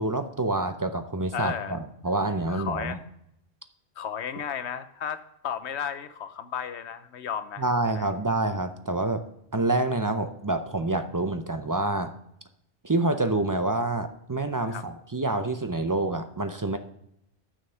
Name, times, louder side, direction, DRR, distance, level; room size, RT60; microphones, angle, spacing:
voice 1, 0.0-1.8 2.0-3.0 7.6-9.2 9.5-12.1 12.8-16.8, right 2 dB, 30° right, 8 dB, 0.3 m, -27 dB
voice 2, 1.3-1.8 2.5-3.0 4.0-7.6 7.9-8.1 14.7-14.8, left 8 dB, 75° left, 11 dB, 1.0 m, -34 dB
9.6 x 6.4 x 5.5 m, 0.77 s
omnidirectional pair, 1.2 m